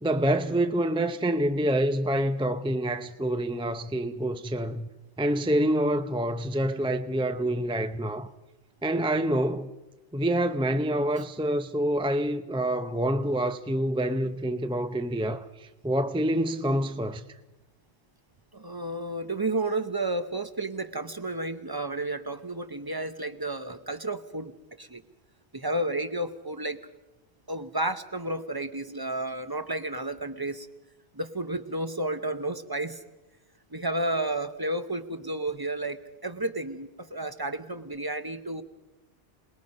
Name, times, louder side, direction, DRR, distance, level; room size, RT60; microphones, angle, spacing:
voice 1, 0.0-4.9 5.2-8.3 8.8-9.7 10.1-17.2, right 1 dB, 10° right, 0.4 m, -27 dB
voice 2, 18.5-24.5 24.8-25.0 25.5-26.8 27.5-30.7 31.1-33.0 33.7-38.6, right 2 dB, 25° right, 0.8 m, -32 dB
27.5 x 19.5 x 5.3 m
omnidirectional pair, 1.2 m